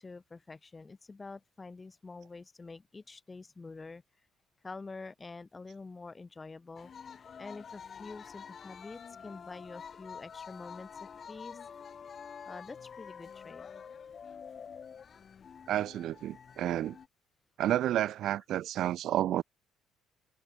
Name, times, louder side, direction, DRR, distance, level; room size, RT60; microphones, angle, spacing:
voice 1, 0.0-4.0 4.6-6.9 7.4-11.6 12.4-13.7, left 3 dB, 20° left, 1.2 m, -47 dB
sound 1, 6.8-17.1, left 7 dB, 40° left, 3.8 m, -48 dB
voice 2, 15.7-17.0 17.6-19.4, right 12 dB, 65° right, 0.8 m, -30 dB
cardioid pair, 115°, 0 cm